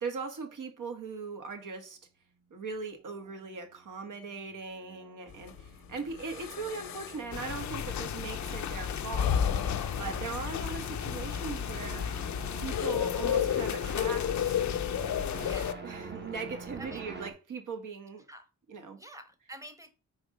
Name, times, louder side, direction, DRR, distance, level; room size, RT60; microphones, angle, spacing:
voice 1, 0.0-2.0 2.5-9.5 10.0-12.1 12.6-14.6 15.8-18.3 18.7-19.0, right 4 dB, 60° right, 1.4 m, -39 dB
sound 1, 2.8-17.3, right 4 dB, 30° right, 1.1 m, -47 dB
sound 2, 5.3-12.9, left 7 dB, 85° left, 0.9 m, -36 dB
sound 3, 7.3-15.7, left 9 dB, 55° left, 0.6 m, -32 dB
voice 2, 15.4-15.8 16.8-17.1 18.3-18.5 19.0-19.9, right 1 dB, 10° right, 1.1 m, -48 dB
4.7 x 3.8 x 5.1 m
cardioid pair, 85°, 35 cm